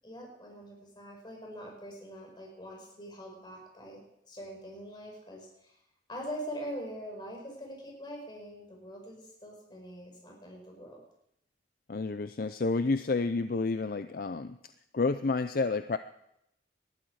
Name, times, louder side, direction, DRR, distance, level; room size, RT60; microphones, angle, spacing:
voice 1, 0.0-5.7 6.1-11.0, equal, 25° left, -1 dB, 5.3 m, -43 dB
voice 2, 11.9-14.6 14.9-16.0, left 3 dB, 55° left, 11 dB, 0.5 m, -30 dB
19.5 x 13.0 x 4.8 m, 0.78 s
head